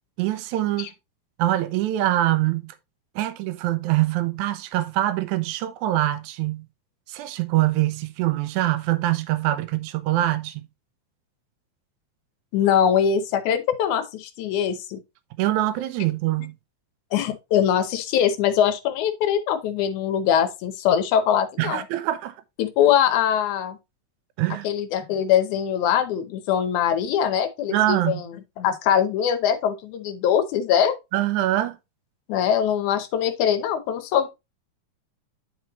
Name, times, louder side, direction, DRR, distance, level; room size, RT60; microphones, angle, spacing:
voice 1, 0.2-0.9 1.4-2.7 3.2-6.7 7.1-10.7 15.4-16.5 21.6-22.3 24.4-24.7 27.7-28.2 31.1-31.8, right 15 dB, 75° right, 1.9 m, -24 dB
voice 2, 12.5-15.0 17.1-21.8 22.6-23.8 24.6-28.2 28.6-31.0 32.3-34.3, left 9 dB, 70° left, 2.2 m, -22 dB
10.5 x 4.3 x 3.0 m
omnidirectional pair, 3.8 m